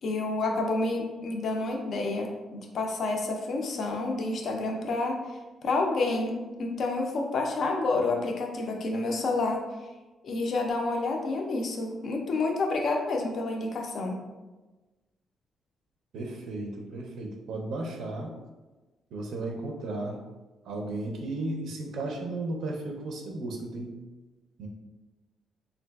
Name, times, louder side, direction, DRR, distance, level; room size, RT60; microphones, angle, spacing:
voice 1, 0.0-5.2 5.6-9.6 10.2-14.2, left 3 dB, 50° left, 2 dB, 0.4 m, -29 dB
voice 2, 16.1-18.4 19.1-20.2 20.6-23.9 24.6-24.7, right 2 dB, 75° right, 2 dB, 0.4 m, -34 dB
3.7 x 2.4 x 2.2 m, 1.2 s
cardioid pair, 155°, 0 cm